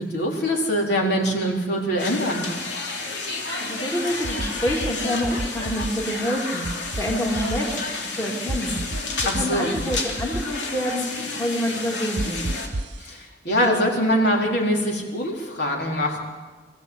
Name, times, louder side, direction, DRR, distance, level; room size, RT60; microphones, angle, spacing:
voice 1, 0.0-2.4 9.2-9.7 13.0-16.2, equal, 70° left, -1 dB, 4.1 m, -23 dB
sound 1, 2.0-12.7, left 3 dB, 90° left, 2.9 m, -31 dB
voice 2, 3.6-6.7 6.9-7.8 8.1-8.8 9.3-11.1 11.4-12.4, equal, 15° left, -1 dB, 2.8 m, -27 dB
sound 2, 4.2-4.9 5.2-5.9 6.6-7.6 8.5-9.4 9.8-10.4 12.2-13.0, right 1 dB, 80° right, 0.8 m, -30 dB
24.5 x 15.0 x 8.2 m, 1.4 s
head